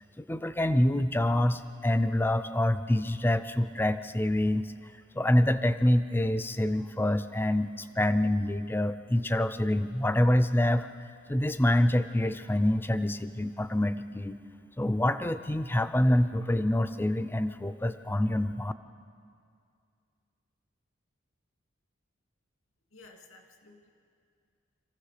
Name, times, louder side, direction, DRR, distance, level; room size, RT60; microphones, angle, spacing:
voice 1, 0.2-4.7 5.1-10.9 11.3-14.4 14.8-18.7, left 1 dB, 10° left, 12 dB, 0.4 m, -26 dB
voice 2, 22.9-23.9, left 3 dB, 90° left, 2 dB, 2.5 m, -54 dB
26.0 x 15.0 x 6.6 m, 2.3 s
head